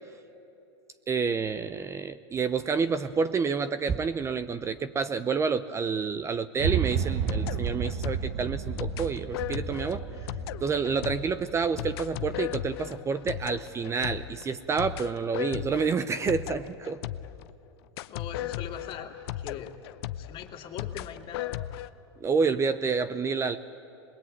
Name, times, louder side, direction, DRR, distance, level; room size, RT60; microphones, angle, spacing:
voice 1, 1.1-10.0 10.6-17.0 22.2-23.6, right 5 dB, 20° right, 11 dB, 0.7 m, -29 dB
sound 1, 6.6-12.8, right 8 dB, 55° right, 1.2 m, -32 dB
sound 2, 6.7-17.5 18.0-21.9, left 13 dB, 65° left, 0.8 m, -37 dB
voice 2, 18.1-19.7 20.2-21.7, left 8 dB, 40° left, 3 dB, 2.6 m, -41 dB
26.5 x 21.5 x 9.2 m, 2.8 s
hypercardioid pair, 120°, 14 cm